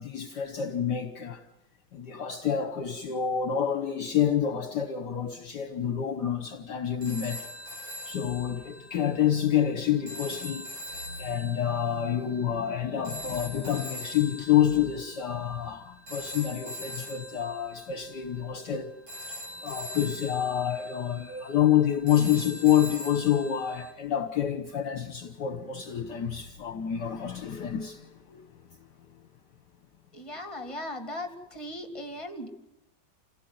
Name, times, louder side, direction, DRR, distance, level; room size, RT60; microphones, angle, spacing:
voice 1, 0.0-1.4 1.9-7.4 8.1-10.7 11.2-18.9 19.6-28.4, left 10 dB, 60° left, 1.7 m, -28 dB
sound 1, 7.0-23.9, equal, 80° right, 8.1 m, -42 dB
voice 2, 30.1-32.5, left 1 dB, 15° left, 2.7 m, -38 dB
27.5 x 17.0 x 9.4 m
omnidirectional pair, 2.1 m